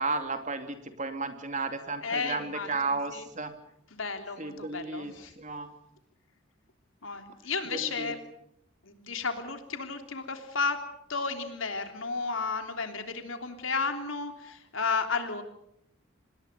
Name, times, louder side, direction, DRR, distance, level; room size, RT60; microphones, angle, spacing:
voice 1, 0.0-3.5 4.4-5.7 7.7-8.1, right 3 dB, 35° right, 8 dB, 2.5 m, -33 dB
voice 2, 2.0-3.3 3.9-5.3 7.0-8.2 8.8-10.8 11.1-15.4, left 4 dB, 75° left, 6 dB, 3.3 m, -33 dB
26.0 x 20.5 x 6.8 m, 0.76 s
head